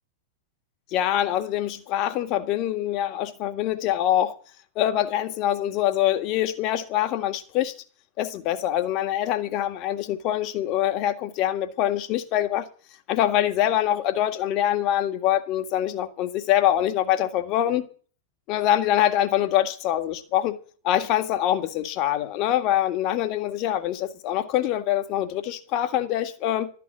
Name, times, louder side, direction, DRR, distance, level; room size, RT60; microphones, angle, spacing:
voice 1, 0.9-4.4 4.8-7.7 8.2-12.7 13.1-17.9 18.5-20.6 20.8-26.7, left 12 dB, 40° left, 1.8 m, -24 dB
13.0 x 9.5 x 9.3 m
figure-of-eight pair, 100°, 0 cm